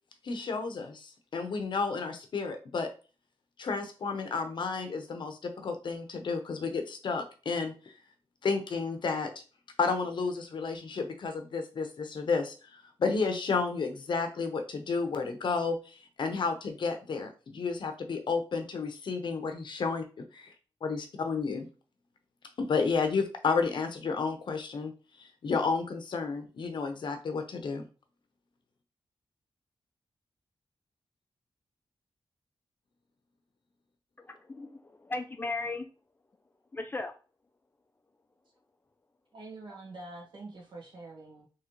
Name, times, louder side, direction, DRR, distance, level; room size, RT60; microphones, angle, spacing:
voice 1, 0.2-2.9 3.6-7.7 8.4-9.3 9.8-12.5 13.0-20.5 20.8-21.7 22.6-24.9 25.2-27.8, left 4 dB, 65° left, 6 dB, 0.7 m, -31 dB
voice 2, 34.2-35.9 36.7-37.1, left 3 dB, 25° left, 6 dB, 0.4 m, -36 dB
voice 3, 39.3-41.5, right 2 dB, 60° right, -1 dB, 1.4 m, -45 dB
3.7 x 3.0 x 3.0 m, 0.35 s
wide cardioid pair, 150°, 9 cm